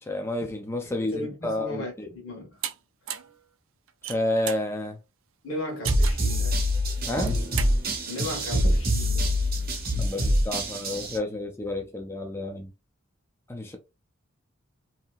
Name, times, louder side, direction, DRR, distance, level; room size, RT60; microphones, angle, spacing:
voice 1, 0.1-2.1 4.0-5.0 7.1-7.4 10.0-12.7 13.5-13.8, left 1 dB, 10° left, 0.4 m, -30 dB
voice 2, 1.1-2.6 5.4-6.6 8.1-9.4, left 1 dB, 65° left, 1.2 m, -36 dB
sound 1, 2.6-2.7 3.1-3.3 3.9-4.7 5.8-6.3 7.1-7.7, right 10 dB, 70° right, 0.4 m, -34 dB
sound 2, 5.8-11.2, equal, 45° right, 0.9 m, -25 dB
Drum, 7.2-9.1, equal, 10° right, 0.7 m, -41 dB
2.8 x 2.7 x 2.3 m
head